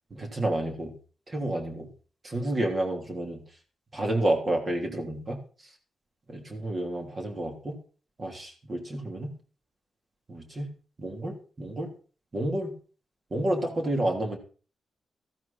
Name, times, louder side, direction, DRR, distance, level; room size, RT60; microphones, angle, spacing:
voice 1, 0.1-0.9 1.3-1.9 2.2-3.4 3.9-5.4 6.3-7.7 8.2-9.3 10.3-10.7 11.0-11.9 12.3-12.7 13.3-14.4, right 1 dB, 30° right, 2 dB, 3.3 m, -30 dB
14.0 x 12.5 x 4.3 m, 0.38 s
wide cardioid pair, 140°, 0 cm